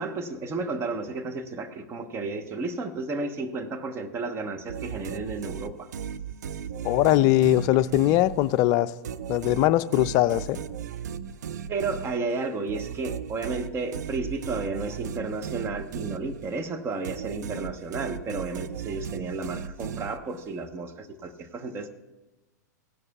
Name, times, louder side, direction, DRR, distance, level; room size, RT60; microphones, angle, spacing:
voice 1, 0.0-5.9 11.7-21.9, right 3 dB, 25° right, 8 dB, 1.0 m, -32 dB
sound 1, 4.7-8.7 9.0-16.7 17.0-20.5, right 8 dB, 70° right, 0.5 m, -36 dB
voice 2, 6.8-8.9 9.3-10.6, left 15 dB, 40° left, 14 dB, 0.4 m, -21 dB
17.5 x 10.5 x 2.4 m, 1.1 s
hypercardioid pair, 110°, 10 cm